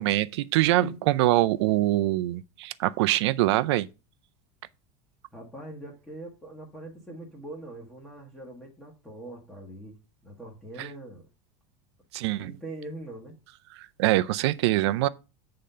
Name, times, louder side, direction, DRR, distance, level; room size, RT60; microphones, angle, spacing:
voice 1, 0.0-3.9 10.8-10.9 12.1-12.5 14.0-15.1, right 16 dB, 75° right, 0.5 m, -24 dB
voice 2, 5.3-11.3 12.3-13.3, right 1 dB, 5° left, 1.3 m, -42 dB
8.4 x 3.8 x 5.5 m
supercardioid pair, 170°, 14 cm